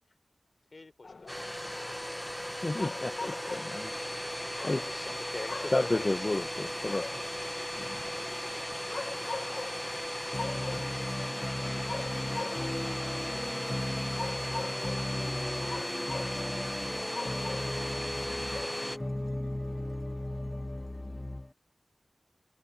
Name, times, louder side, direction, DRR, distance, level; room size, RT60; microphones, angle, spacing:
voice 1, 0.7-2.0 4.5-6.2, left 3 dB, 60° left, 4.5 m, -43 dB
sound 1, 1.0-19.1, left 3 dB, 80° left, 1.8 m, -43 dB
Domestic sounds home sounds, 1.3-19.0, equal, 5° left, 1.4 m, -36 dB
voice 2, 2.4-4.8 5.7-7.1, left 2 dB, 40° left, 1.4 m, -32 dB
voice 3, 10.3-21.5, left 1 dB, 25° left, 1.3 m, -36 dB
sound 2, 11.8-16.0, right 3 dB, 85° right, 7.6 m, -58 dB
wide cardioid pair, 70°, 0 cm